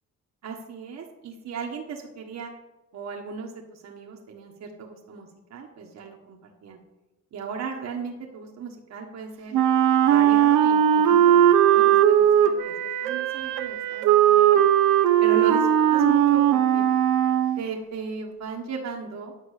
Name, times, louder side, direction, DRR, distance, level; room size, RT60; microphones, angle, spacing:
voice 1, 0.4-2.5 2.9-6.8 7.3-9.5 10.0-14.6 15.2-16.8 17.6-19.3, right 5 dB, 60° right, 1 dB, 1.4 m, -36 dB
Wind instrument woodwind instrument, 9.5-17.6, right 10 dB, 90° right, 0.8 m, -19 dB
10.0 x 6.4 x 6.5 m, 1.1 s
cardioid pair, 90°, 30 cm